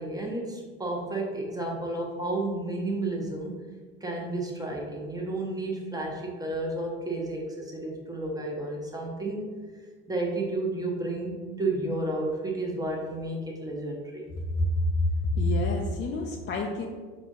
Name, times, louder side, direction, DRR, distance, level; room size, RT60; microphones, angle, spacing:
voice 1, 0.0-3.5 4.0-9.5 10.1-14.3, right 2 dB, 10° right, -1 dB, 0.9 m, -32 dB
voice 2, 14.6-14.9 15.2-16.9, left 1 dB, 35° left, -1 dB, 0.5 m, -27 dB
4.9 x 2.5 x 3.7 m, 1.5 s
supercardioid pair, 85°, 32 cm